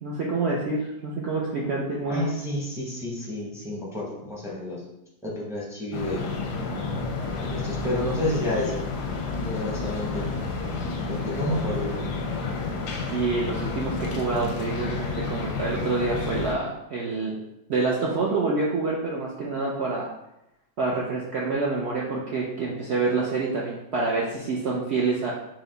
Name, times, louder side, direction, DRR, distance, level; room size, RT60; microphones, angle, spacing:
voice 1, 0.0-2.3 11.3-11.4 13.1-17.4 17.7-20.1 20.8-25.3, right 3 dB, 75° right, -3 dB, 0.6 m, -27 dB
voice 2, 2.1-4.8 5.2-6.3 7.4-8.8 9.4-10.2 11.1-12.1, left 1 dB, 5° right, -5 dB, 0.4 m, -30 dB
sound 1, 5.9-16.5, left 4 dB, 85° left, 1.2 m, -30 dB
4.6 x 2.1 x 3.8 m, 0.87 s
omnidirectional pair, 1.7 m